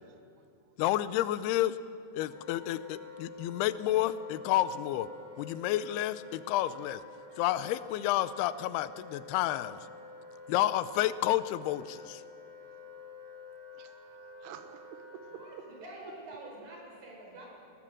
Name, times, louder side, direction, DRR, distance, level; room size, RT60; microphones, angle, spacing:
voice 1, 0.8-1.8 2.1-5.1 5.4-7.0 7.4-9.8 10.5-12.2, left 13 dB, 80° left, 15 dB, 2.5 m, -30 dB
Wind instrument woodwind instrument, 2.3-15.6, left 3 dB, 15° right, 4.9 m, -49 dB
voice 2, 13.7-16.4, right 7 dB, 80° right, 8 dB, 3.2 m, -50 dB
voice 3, 15.4-17.5, right 1 dB, 55° right, -2 dB, 6.7 m, -47 dB
20.0 x 19.0 x 7.4 m, 2.6 s
omnidirectional pair, 4.8 m